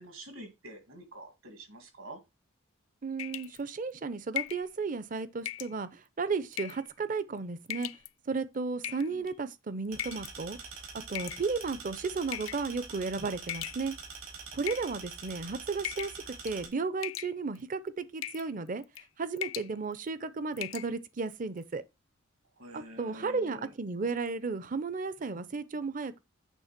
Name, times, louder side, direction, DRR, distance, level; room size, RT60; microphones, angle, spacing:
voice 1, 0.0-2.2 8.9-9.2 22.6-23.7, right 1 dB, 70° right, 2.3 m, -47 dB
voice 2, 3.0-7.9 8.3-10.6 11.1-14.0 14.5-18.8 19.2-21.8 22.7-26.2, right 4 dB, 40° right, 0.5 m, -34 dB
sound 1, 3.2-3.6 4.4-4.7 5.5-5.7 6.5-6.9 7.7-8.1 8.8-9.3 10.0-10.3 11.2-11.7 12.3-12.7 13.5-14.1 14.6-15.3 15.8-16.2 16.5-16.7 17.0-17.6 18.2-18.5 18.8-19.1 19.4-19.7 20.1-20.2 20.6-20.9, left 13 dB, 65° left, 0.4 m, -38 dB
sound 2, 9.9-16.7, right 5 dB, 85° right, 2.6 m, -45 dB
8.3 x 3.3 x 5.9 m
head